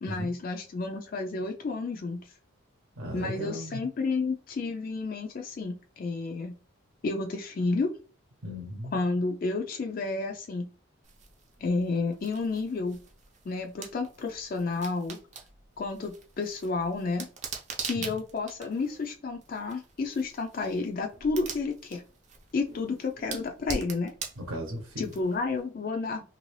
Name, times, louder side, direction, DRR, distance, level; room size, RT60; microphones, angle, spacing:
voice 1, 0.0-2.3 3.1-6.5 7.0-7.9 8.9-10.7 11.6-13.0 13.5-15.2 15.8-17.3 17.8-22.0 22.5-24.1 25.0-26.3, left 3 dB, 40° left, 3 dB, 0.3 m, -31 dB
voice 2, 3.0-3.8 8.4-9.0 18.0-18.2 24.4-25.1, equal, 85° right, 1 dB, 0.9 m, -36 dB
sound 1, 11.0-25.6, right 5 dB, 35° right, 0.5 m, -43 dB
3.0 x 2.6 x 3.1 m, 0.37 s
head